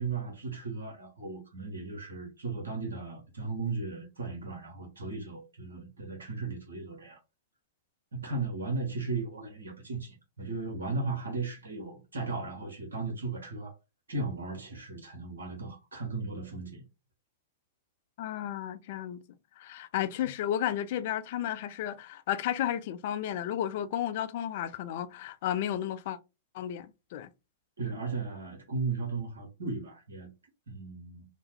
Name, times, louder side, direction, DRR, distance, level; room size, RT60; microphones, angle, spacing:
voice 1, 0.0-7.2 8.1-13.7 14.1-16.8 27.8-30.3 30.7-31.3, right 3 dB, 80° right, 1.2 m, -36 dB
voice 2, 18.2-19.2 19.6-26.2 26.5-27.3, left 11 dB, 55° left, 0.4 m, -33 dB
2.8 x 2.2 x 3.0 m
hypercardioid pair, 105°, 0 cm